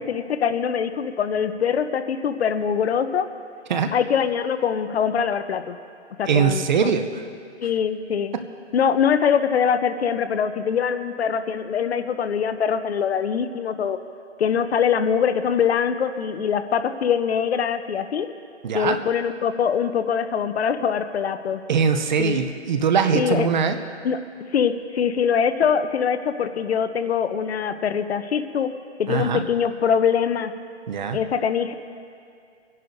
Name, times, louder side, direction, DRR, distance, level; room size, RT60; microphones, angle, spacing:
voice 1, 0.0-3.3 3.9-5.8 6.2-7.0 7.6-8.3 8.7-14.0 14.4-18.3 18.7-21.6 22.2-22.4 23.1-23.5 24.0-24.2 24.5-28.7 29.0-30.5 31.1-31.7, left 7 dB, 65° left, 11 dB, 0.7 m, -23 dB
voice 2, 6.3-7.1 8.3-8.4 18.6-19.0 21.7-23.8 29.1-29.4 30.9-31.2, right 6 dB, 40° right, 7 dB, 0.7 m, -21 dB
25.5 x 10.5 x 2.7 m, 2.3 s
hypercardioid pair, 160°, 35 cm